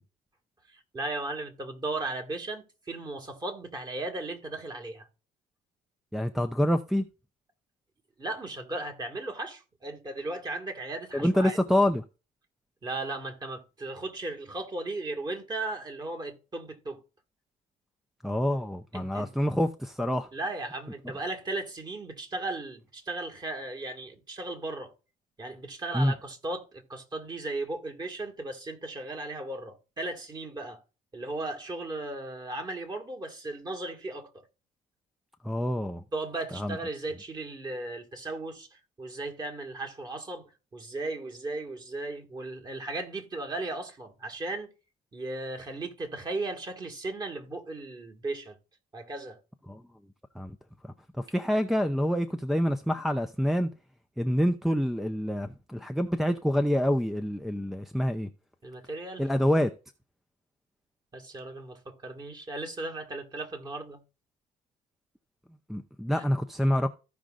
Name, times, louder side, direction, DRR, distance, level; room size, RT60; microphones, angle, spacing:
voice 1, 0.7-5.1 8.2-11.6 12.8-17.0 18.9-19.3 20.3-24.9 25.4-30.8 31.1-34.4 36.1-38.7 39.0-44.7 45.1-48.6 48.9-49.4 58.6-59.3 61.1-64.0 66.1-66.2, right 2 dB, 25° right, 1.7 m, -36 dB
voice 2, 6.1-7.0 11.1-12.0 18.2-20.3 25.9-26.1 35.4-36.0 36.5-36.8 49.7-49.8 50.4-50.6 50.8-53.7 54.2-58.3 59.2-59.7 65.7-66.9, equal, ahead, 0.5 m, -27 dB
15.0 x 5.1 x 2.4 m
cardioid pair, 110°, 17 cm